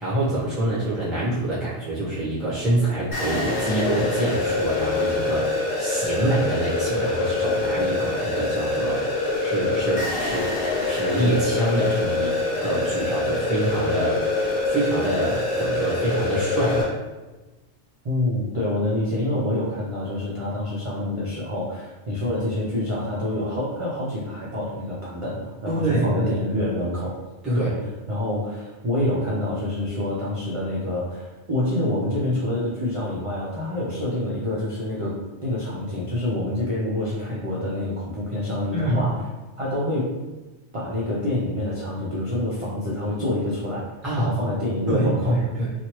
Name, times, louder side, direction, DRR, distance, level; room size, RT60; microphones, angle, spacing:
voice 1, 0.0-9.1 9.4-17.0 25.7-26.6 27.4-27.7 38.7-39.1 44.0-44.3 44.9-45.7, right 1 dB, ahead, -9 dB, 0.6 m, -26 dB
sound 1, 3.1-16.8, left 2 dB, 55° left, 1.0 m, -25 dB
voice 2, 18.0-27.2 27.5-39.2 39.6-40.1 40.7-43.9 44.2-45.4, left 1 dB, 55° right, -6 dB, 0.3 m, -27 dB
3.0 x 2.4 x 2.9 m, 1.2 s
omnidirectional pair, 1.2 m